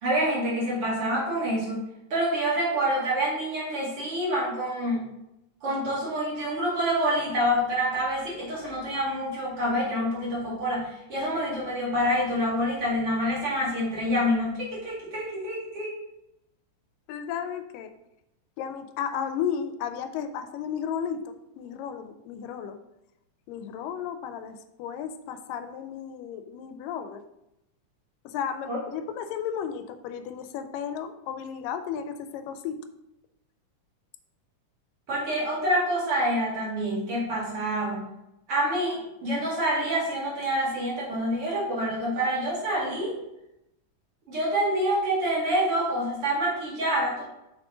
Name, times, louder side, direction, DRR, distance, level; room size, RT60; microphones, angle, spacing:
voice 1, 0.0-1.8 2.1-5.0 5.6-15.9 28.7-28.8 35.1-38.0 38.5-43.1 44.3-47.2, equal, 45° right, -5 dB, 2.7 m, -27 dB
voice 2, 17.1-17.9 18.6-22.8 23.5-27.2 28.3-32.8, left 8 dB, 85° left, 9 dB, 2.2 m, -34 dB
6.2 x 6.0 x 3.8 m, 0.88 s
omnidirectional pair, 3.9 m